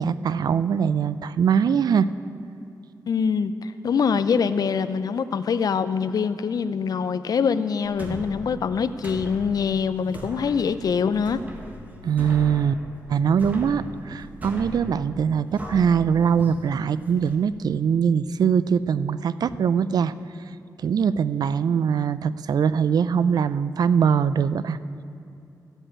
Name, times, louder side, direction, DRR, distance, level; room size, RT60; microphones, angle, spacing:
voice 1, 0.0-2.1 12.0-12.8 13.1-20.1 20.8-24.8, right 7 dB, 75° right, 15 dB, 0.4 m, -22 dB
voice 2, 3.1-11.4, left 6 dB, 65° left, 13 dB, 0.5 m, -24 dB
sound 1, 7.9-17.4, equal, 25° right, 1.4 m, -39 dB
14.0 x 5.4 x 8.6 m, 2.6 s
wide cardioid pair, 90°, 7 cm